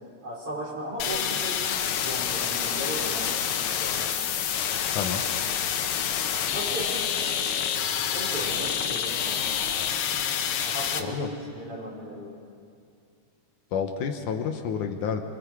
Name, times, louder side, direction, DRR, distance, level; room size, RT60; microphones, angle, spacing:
voice 1, 0.2-1.6 2.0-3.4 3.7-4.2 6.5-7.0 7.9-9.4 10.6-12.3, right 1 dB, 40° right, -5 dB, 6.0 m, -36 dB
sound 1, 1.0-11.0, left 8 dB, 90° left, 2.7 m, -28 dB
voice 2, 4.9-5.2 11.0-11.3 13.7-15.2, left 7 dB, 75° left, 5 dB, 2.4 m, -29 dB
26.0 x 25.0 x 4.8 m, 2.4 s
omnidirectional pair, 3.7 m